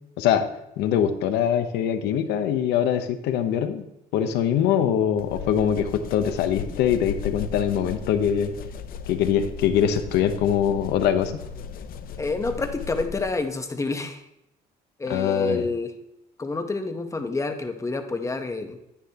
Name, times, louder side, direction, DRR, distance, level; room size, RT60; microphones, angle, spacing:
voice 1, 0.8-3.8 4.1-8.5 9.1-11.3 15.1-15.7, left 9 dB, 85° left, 8 dB, 1.0 m, -23 dB
sound 1, 5.2-13.5, left 6 dB, 60° left, 0.7 m, -36 dB
voice 2, 12.2-14.2 15.0-15.9 16.4-18.8, left 3 dB, 20° left, 6 dB, 1.1 m, -28 dB
9.9 x 9.5 x 3.0 m, 0.87 s
cardioid pair, 110°, 17 cm